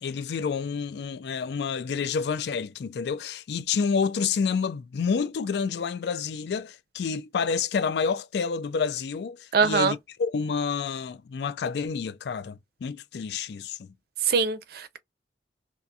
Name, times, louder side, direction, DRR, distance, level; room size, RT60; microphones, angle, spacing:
voice 1, 0.0-13.8, left 5 dB, 65° left, 0.3 m, -29 dB
voice 2, 9.5-10.0 14.3-15.0, right 5 dB, 60° right, 0.5 m, -23 dB
2.7 x 2.4 x 2.3 m
head